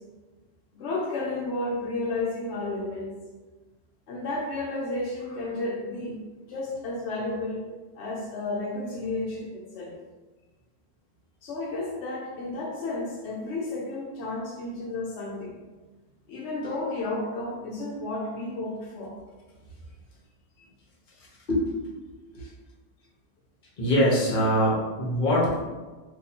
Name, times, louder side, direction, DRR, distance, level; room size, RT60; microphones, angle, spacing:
voice 1, 0.7-3.1 4.1-6.2 6.5-7.6 8.0-10.0 11.4-15.6 16.3-19.2 22.4-22.5, left 2 dB, 80° left, -3 dB, 0.9 m, -32 dB
voice 2, 23.8-25.7, equal, 50° left, -4 dB, 1.1 m, -23 dB
2.6 x 2.6 x 4.1 m, 1.2 s
omnidirectional pair, 1.1 m